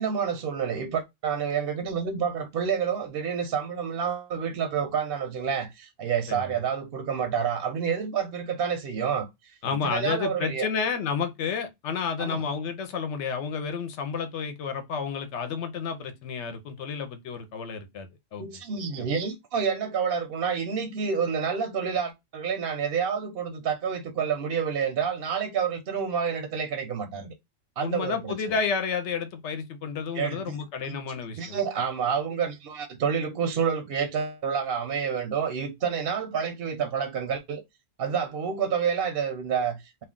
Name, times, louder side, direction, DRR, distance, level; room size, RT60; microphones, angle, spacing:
voice 1, 0.0-9.5 9.8-10.7 12.2-12.4 18.4-27.3 27.8-28.3 30.1-30.4 30.8-31.0 31.4-37.6 38.0-40.0, right 7 dB, 60° right, 0.7 m, -28 dB
voice 2, 9.6-18.6 19.0-19.1 27.8-31.6, left 6 dB, 70° left, 0.9 m, -31 dB
2.4 x 2.3 x 3.6 m
omnidirectional pair, 1.3 m